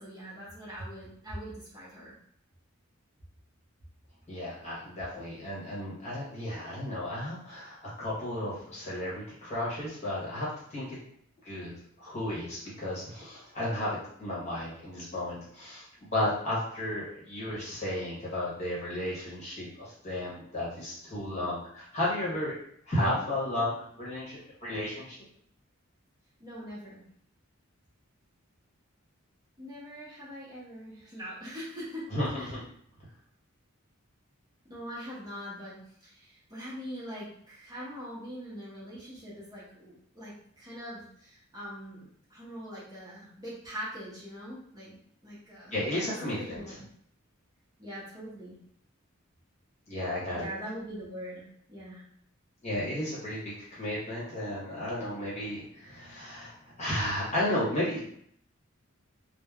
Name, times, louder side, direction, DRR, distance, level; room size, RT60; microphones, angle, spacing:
voice 1, 0.0-2.1 26.4-27.0 29.6-32.0 32.3-32.5 34.7-45.8 46.2-46.9 47.8-48.6 50.3-52.0, equal, 15° right, -8 dB, 0.7 m, -42 dB
voice 2, 4.3-11.0 11.4-11.7 12.0-22.5 22.9-25.2 32.1-32.6 45.7-46.8 49.9-50.5 52.6-58.0, left 1 dB, 30° left, -7 dB, 1.0 m, -33 dB
3.2 x 2.0 x 2.3 m, 0.66 s
head